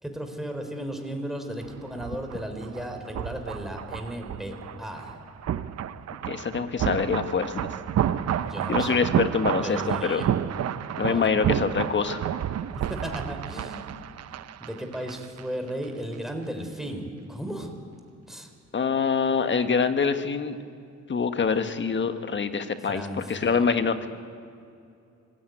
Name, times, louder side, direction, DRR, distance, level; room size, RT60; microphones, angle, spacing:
voice 1, 0.0-5.2 8.4-9.0 9.6-10.3 11.0-11.3 12.9-13.8 14.6-17.7 18.3-18.5 22.9-23.7, right 1 dB, ahead, 4 dB, 3.9 m, -35 dB
sound 1, 1.6-15.4 15.7-15.8, right 10 dB, 55° right, 0.8 m, -30 dB
voice 2, 6.3-7.7 8.7-10.3 11.0-12.2 18.7-20.6 21.1-23.0 23.3-24.1, left 5 dB, 40° left, 9 dB, 1.5 m, -25 dB
25.0 x 17.0 x 9.2 m, 2.5 s
cardioid pair, 90°, 30 cm